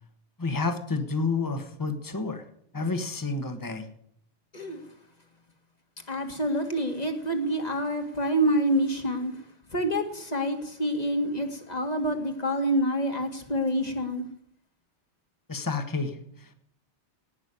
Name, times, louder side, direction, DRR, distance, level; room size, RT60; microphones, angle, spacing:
voice 1, 0.4-2.4 2.7-3.9 15.5-16.5, left 3 dB, 15° left, 1.3 m, -30 dB
voice 2, 6.1-9.3 9.7-14.2, equal, 35° left, 2.0 m, -27 dB
18.5 x 6.2 x 9.7 m
omnidirectional pair, 1.2 m